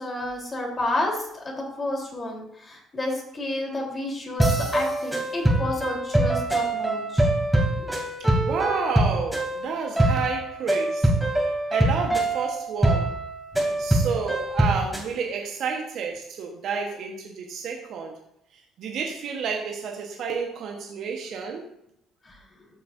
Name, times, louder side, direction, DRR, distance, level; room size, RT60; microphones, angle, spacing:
voice 1, 0.0-7.3 7.8-7.9, left 2 dB, 35° left, -1 dB, 3.5 m, -30 dB
sound 1, 4.4-15.1, right 1 dB, 5° right, 2.8 m, -24 dB
voice 2, 8.4-11.1 11.7-13.1 13.8-18.1 18.8-21.6, right 5 dB, 65° right, 2 dB, 1.2 m, -30 dB
13.5 x 6.9 x 2.6 m, 0.77 s
hypercardioid pair, 55°, 0 cm